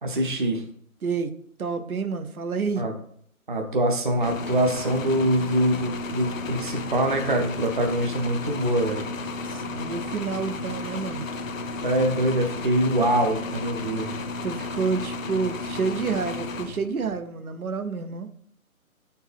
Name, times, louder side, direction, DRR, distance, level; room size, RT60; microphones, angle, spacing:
voice 1, 0.0-0.6 2.8-2.9 3.5-9.1 11.8-14.1, right 1 dB, 35° right, 3 dB, 0.6 m, -24 dB
voice 2, 1.6-2.8 9.4-11.3 14.4-18.3, right 5 dB, 80° right, 9 dB, 0.8 m, -29 dB
sound 1, 4.2-17.2, left 3 dB, 65° left, 0.6 m, -33 dB
7.7 x 4.4 x 3.4 m, 0.63 s
hypercardioid pair, 170°, 43 cm